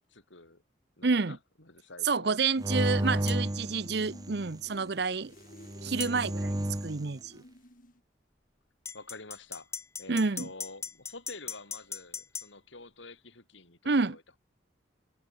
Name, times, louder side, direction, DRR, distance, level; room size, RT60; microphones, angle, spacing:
voice 1, 0.1-0.6 1.0-2.3 8.9-9.7 10.0-14.4, left 3 dB, 80° left, 5.0 m, -48 dB
voice 2, 1.0-1.4 2.0-5.3 5.8-7.4 10.1-10.5 13.9-14.2, right 4 dB, 60° right, 0.7 m, -29 dB
sound 1, 2.6-4.6 5.6-7.1, right 1 dB, 20° right, 1.1 m, -32 dB
sound 2, 2.8-8.0, left 1 dB, 45° left, 5.6 m, -53 dB
sound 3, 3.3-3.4 6.0-6.2 8.9-12.5, left 6 dB, 15° left, 0.5 m, -39 dB
head